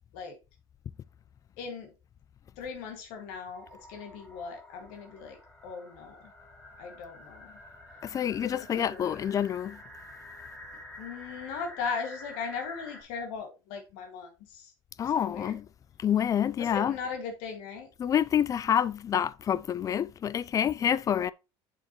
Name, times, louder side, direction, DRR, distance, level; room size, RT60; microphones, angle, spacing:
voice 1, 1.6-1.9 2.6-5.4 5.6-6.3 6.8-7.5 8.7-9.2 11.0-14.6 15.1-15.5 16.6-17.9, left 5 dB, 80° left, 2.0 m, -38 dB
sound 1, 3.5-13.0, left 1 dB, 10° left, 1.8 m, -49 dB
voice 2, 8.0-9.8 15.0-15.7 16.0-16.9 18.0-21.3, left 9 dB, 30° left, 0.3 m, -27 dB
7.4 x 6.3 x 3.0 m
cardioid pair, 120°, 11 cm